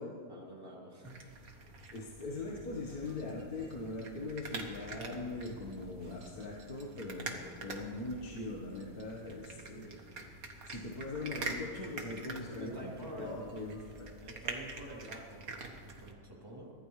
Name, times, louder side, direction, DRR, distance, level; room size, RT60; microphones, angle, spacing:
voice 1, 0.3-1.5 2.0-2.5 12.3-13.4 14.2-15.5 15.8-16.7, right 1 dB, 15° right, -4 dB, 3.1 m, -48 dB
sound 1, 1.0-16.1, right 3 dB, 60° right, 1.7 m, -46 dB
voice 2, 1.9-10.0 10.7-14.2, left 2 dB, 65° left, -2 dB, 1.9 m, -41 dB
23.5 x 16.0 x 3.2 m, 2.4 s
omnidirectional pair, 1.8 m